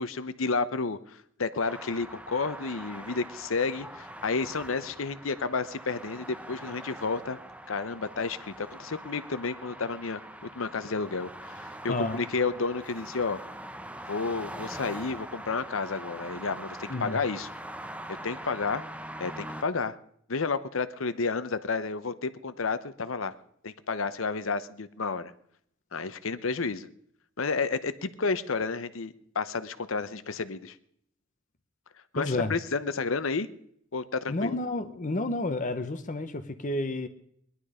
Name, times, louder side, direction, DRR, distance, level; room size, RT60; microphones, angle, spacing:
voice 1, 0.0-7.4 7.7-10.2 10.5-13.4 14.1-17.5 18.2-18.8 19.2-19.9 20.3-23.3 23.6-25.3 25.9-26.9 27.4-30.8 32.1-33.5 33.9-34.6, left 4 dB, 75° left, 13 dB, 0.8 m, -31 dB
sound 1, 1.6-19.6, right 1 dB, 5° right, 0.9 m, -43 dB
voice 2, 11.9-12.2 16.9-17.2 32.2-32.6 34.3-37.1, left 2 dB, 40° left, 9 dB, 0.9 m, -30 dB
20.0 x 11.5 x 5.0 m, 0.69 s
head